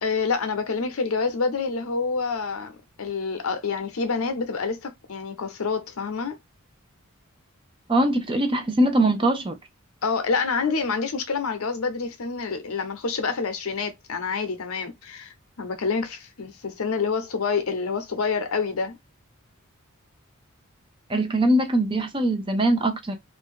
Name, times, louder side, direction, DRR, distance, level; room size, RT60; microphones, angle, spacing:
voice 1, 0.0-6.4 10.0-19.0, left 4 dB, 70° left, 0.7 m, -27 dB
voice 2, 7.9-9.6 21.1-23.1, right 1 dB, 25° right, 0.5 m, -22 dB
2.6 x 2.2 x 3.6 m
head